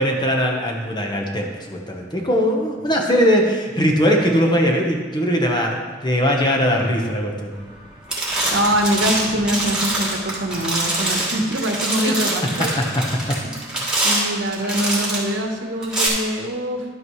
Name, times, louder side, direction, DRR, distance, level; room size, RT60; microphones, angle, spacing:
voice 1, 0.0-7.5 12.0-12.1 12.6-13.0 13.3-13.4, equal, 25° left, 1 dB, 1.1 m, -20 dB
sound 1, 7.6-7.8 8.1-15.3 15.8-16.1, right 1 dB, 5° right, 2.3 m, -24 dB
voice 2, 8.5-12.7 13.4-13.5 14.0-16.8, equal, 85° right, 3 dB, 1.1 m, -23 dB
11.5 x 8.2 x 3.2 m, 1.4 s
head